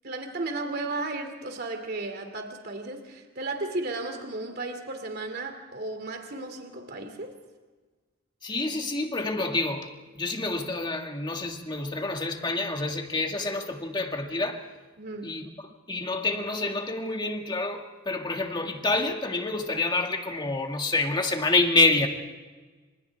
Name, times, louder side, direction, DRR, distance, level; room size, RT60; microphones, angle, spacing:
voice 1, 0.0-7.3 15.0-15.3, right 2 dB, 55° right, 2.8 m, -34 dB
voice 2, 8.4-9.9 10.2-14.6 15.2-15.5 15.9-22.1, left 2 dB, 25° left, 2.2 m, -27 dB
29.5 x 27.0 x 3.6 m
head